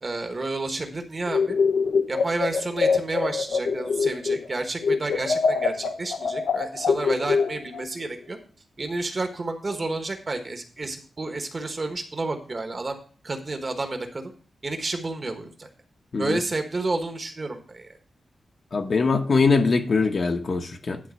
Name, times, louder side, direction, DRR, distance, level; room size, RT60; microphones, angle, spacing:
voice 1, 0.0-1.6 2.1-8.4 8.8-14.3 14.6-15.7 16.2-17.9, right 2 dB, 30° right, 1.2 m, -30 dB
sound 1, 1.3-4.5 4.8-7.8, left 5 dB, 90° left, 0.9 m, -24 dB
voice 2, 18.7-21.0, left 4 dB, 45° left, 1.0 m, -22 dB
11.0 x 3.9 x 6.4 m
wide cardioid pair, 165°, 0 cm